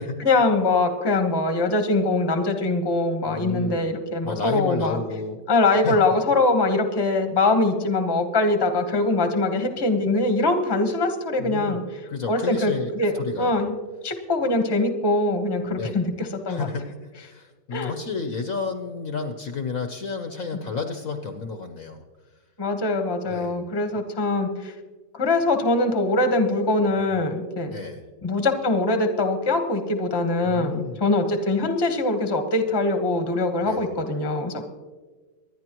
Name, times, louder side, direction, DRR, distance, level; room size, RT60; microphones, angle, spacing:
voice 1, 0.2-5.0 5.5-11.8 12.3-13.7 14.0-16.7 17.7-17.9 22.6-24.7 25.1-27.7 28.2-34.7, left 2 dB, 15° left, 6 dB, 1.0 m, -23 dB
voice 2, 3.3-3.9 4.2-5.4 5.7-6.0 11.4-11.8 12.1-13.5 15.6-16.0 16.5-22.0 23.3-23.6 27.6-28.0 30.4-31.0 33.6-33.9, left 4 dB, 55° left, 6 dB, 1.1 m, -31 dB
24.5 x 10.5 x 3.0 m, 1.3 s
omnidirectional pair, 2.0 m